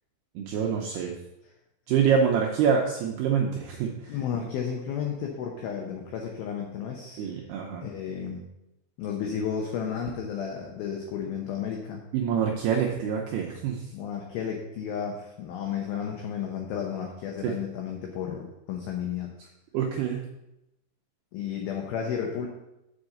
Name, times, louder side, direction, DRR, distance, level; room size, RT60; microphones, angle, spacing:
voice 1, 0.4-1.1 1.9-4.1 7.2-7.8 12.1-13.8 17.4-17.5 19.7-20.2, right 7 dB, 80° right, -1 dB, 2.3 m, -26 dB
voice 2, 4.1-7.4 7.8-8.5 9.0-12.0 13.9-19.3 21.3-22.5, left 7 dB, 85° left, 1 dB, 2.1 m, -33 dB
7.3 x 5.5 x 6.5 m, 0.89 s
omnidirectional pair, 5.5 m